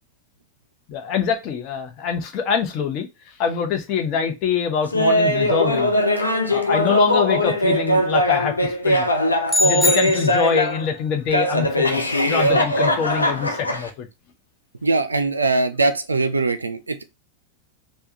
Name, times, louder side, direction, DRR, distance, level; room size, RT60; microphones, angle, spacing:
voice 1, 0.9-3.1 3.4-6.0 6.5-9.0 9.6-14.1, left 6 dB, 40° left, 0.7 m, -24 dB
Laughter, 4.9-10.9 11.3-13.9, left 1 dB, 80° left, 0.5 m, -20 dB
sound 1, 9.5-10.8, left 2 dB, 10° left, 0.5 m, -23 dB
voice 2, 14.8-17.1, right 3 dB, 80° right, 0.4 m, -21 dB
3.4 x 2.2 x 2.7 m
figure-of-eight pair, 85°, 0 cm